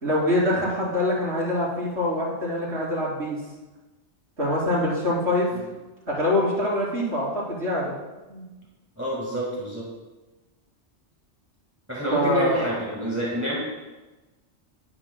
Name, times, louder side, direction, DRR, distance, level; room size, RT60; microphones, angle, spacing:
voice 1, 0.0-3.4 4.4-5.5 6.1-7.9 8.3-8.4 12.1-12.7, left 1 dB, 80° right, -7 dB, 3.9 m, -24 dB
voice 2, 9.0-9.8 11.9-13.6, right 1 dB, 15° right, -4 dB, 1.8 m, -28 dB
11.5 x 9.8 x 2.3 m, 1.1 s
omnidirectional pair, 1.1 m